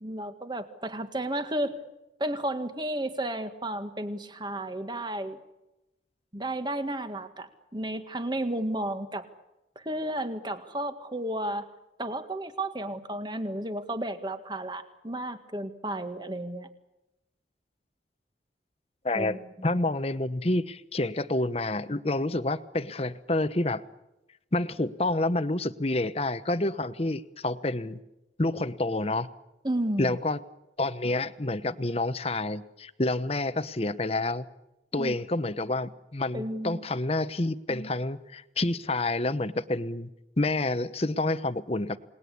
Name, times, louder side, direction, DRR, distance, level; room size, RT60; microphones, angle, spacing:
voice 1, 0.0-1.8 2.2-5.4 6.3-9.3 9.8-11.7 12.0-16.7 19.1-19.7 29.6-30.2 35.0-35.2 36.3-36.8, right 1 dB, 25° right, 9 dB, 1.8 m, -33 dB
voice 2, 19.0-23.8 24.5-28.0 28.4-29.3 30.0-30.4 30.8-34.4 34.9-40.1 40.4-42.0, left 2 dB, 30° left, 13 dB, 1.0 m, -28 dB
29.0 x 20.0 x 8.5 m, 0.95 s
head